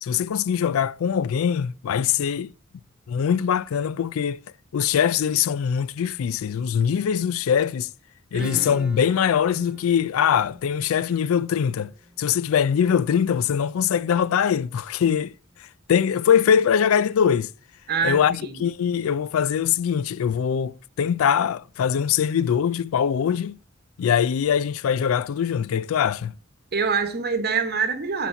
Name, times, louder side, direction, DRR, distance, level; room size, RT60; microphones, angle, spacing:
voice 1, 0.0-2.5 3.1-4.4 4.7-7.9 8.3-11.9 12.2-15.3 15.6-17.5 18.0-23.6 24.0-26.3, left 8 dB, 70° left, 0.3 m, -22 dB
Acoustic guitar / Strum, 8.4-13.7, equal, 5° right, 0.6 m, -43 dB
voice 2, 17.9-18.6 26.7-28.3, right 5 dB, 50° right, 1.1 m, -25 dB
8.1 x 4.2 x 5.8 m
head